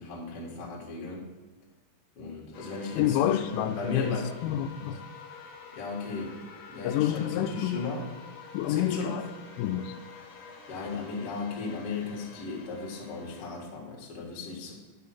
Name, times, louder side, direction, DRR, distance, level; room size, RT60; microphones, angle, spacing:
voice 1, 0.0-1.3 2.2-4.3 5.7-6.4 6.7-8.0 8.6-9.2 10.7-14.9, left 4 dB, 50° left, 1.8 m, -36 dB
sound 1, 2.5-13.5, left 6 dB, 65° left, 1.7 m, -48 dB
voice 2, 3.0-5.1 6.8-7.9 8.5-9.3 9.6-10.0, left 11 dB, 90° left, 3.0 m, -28 dB
10.0 x 5.7 x 5.8 m
omnidirectional pair, 5.4 m